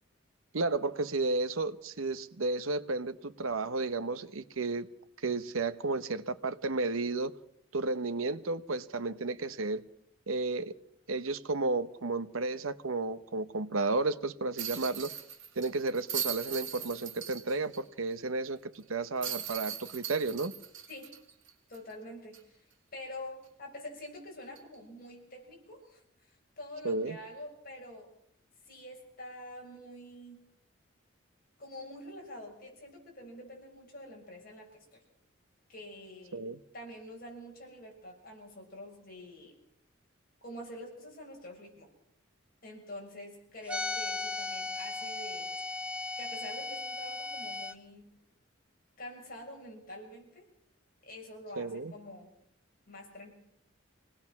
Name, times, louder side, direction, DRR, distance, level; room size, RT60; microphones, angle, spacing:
voice 1, 0.5-4.9 5.2-7.3 7.7-9.8 10.3-10.7 11.1-15.1 15.6-20.5 26.8-27.2 36.3-36.6 51.6-51.9, right 3 dB, 85° right, 0.9 m, -32 dB
sound 1, 14.6-17.8 18.1-18.2 19.2-21.9 22.3-22.4 24.5-24.7, right 9 dB, 60° right, 3.1 m, -39 dB
voice 2, 21.7-22.6 22.9-26.0 26.6-28.1 28.7-30.4 31.6-35.0 35.7-36.4 36.7-39.6 40.4-41.9 42.6-45.5 46.2-48.1 49.0-50.5 51.0-52.3 52.9-53.3, left 1 dB, 45° left, 6.9 m, -46 dB
sound 2, 43.7-47.7, left 3 dB, 5° right, 1.0 m, -36 dB
25.5 x 19.0 x 6.0 m
head